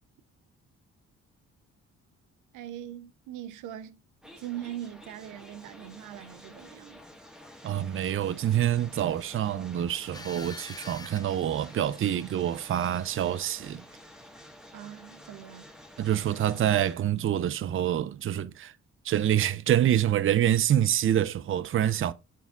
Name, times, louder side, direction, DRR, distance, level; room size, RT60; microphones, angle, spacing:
voice 1, 2.5-4.0 4.4-7.0 14.7-15.7, right 12 dB, 90° right, 0.6 m, -41 dB
sound 1, 4.2-17.0, equal, ahead, 1.3 m, -50 dB
voice 2, 7.6-13.8 16.0-18.7 19.0-22.1, right 11 dB, 45° right, 0.5 m, -26 dB
sound 2, 10.1-13.9, left 3 dB, 15° left, 0.5 m, -48 dB
8.5 x 3.6 x 3.6 m
cardioid pair, 90°, 30 cm